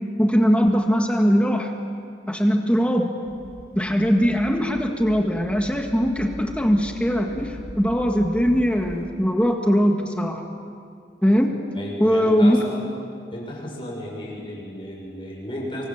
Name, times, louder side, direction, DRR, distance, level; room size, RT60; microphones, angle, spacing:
voice 1, 0.2-1.8 2.3-3.1 3.7-10.4 11.2-11.6 12.0-12.6, equal, 5° left, 3 dB, 1.7 m, -20 dB
sound 1, 3.2-9.1, equal, 50° left, 4.3 m, -41 dB
voice 2, 11.7-12.9 13.3-15.8, equal, 30° left, -2 dB, 6.5 m, -34 dB
25.5 x 24.0 x 7.2 m, 2.3 s
head